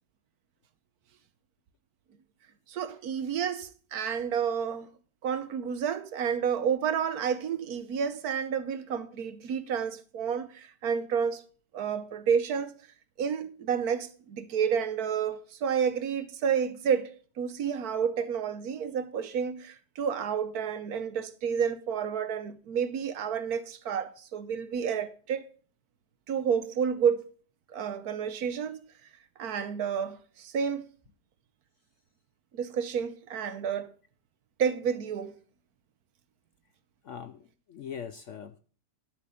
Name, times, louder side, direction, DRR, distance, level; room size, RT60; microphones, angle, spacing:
voice 1, 2.7-4.9 5.2-11.4 11.7-12.8 13.2-17.1 17.4-25.4 26.3-27.2 27.7-28.8 29.4-30.8 32.5-33.9 34.6-35.4, right 7 dB, 65° right, 1.3 m, -30 dB
voice 2, 37.0-38.6, left 7 dB, 65° left, 0.8 m, -42 dB
11.0 x 8.4 x 5.0 m
omnidirectional pair, 1.8 m